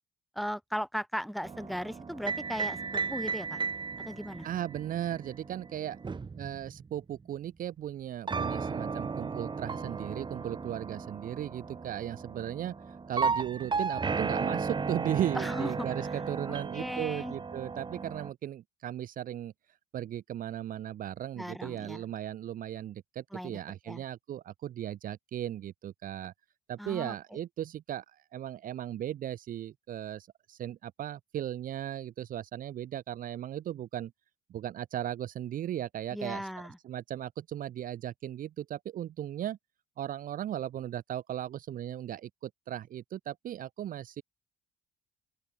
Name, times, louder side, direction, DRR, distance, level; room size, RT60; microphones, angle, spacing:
voice 1, 0.3-3.6 4.1-4.5 15.3-15.9 16.5-17.3 21.4-22.0 23.3-23.6 23.9-24.0 26.8-27.4 36.1-36.8, equal, ahead, 4.3 m, -37 dB
sound 1, 1.4-7.3 8.3-18.3, right 5 dB, 25° right, 5.1 m, -35 dB
voice 2, 4.4-6.0 6.3-19.5 19.9-26.3 26.7-34.1 34.5-36.5 36.8-39.6 40.0-44.2, right 11 dB, 55° right, 1.0 m, -37 dB
open air
cardioid pair, 110°, 17 cm